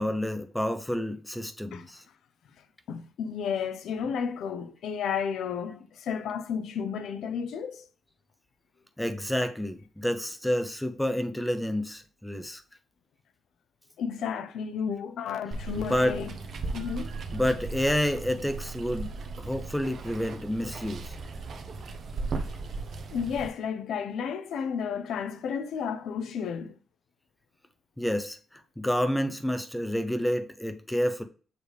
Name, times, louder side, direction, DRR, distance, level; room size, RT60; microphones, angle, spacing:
voice 1, 0.0-2.0 9.0-12.6 15.8-16.2 17.3-21.1 28.0-31.2, left 1 dB, 5° left, 0.5 m, -29 dB
voice 2, 2.9-7.9 14.0-16.3 16.7-17.1 23.1-26.7, left 7 dB, 80° left, 0.7 m, -32 dB
Water, 15.5-23.5, right 3 dB, 50° right, 0.9 m, -37 dB
6.8 x 3.2 x 5.0 m
wide cardioid pair, 155°, 0 cm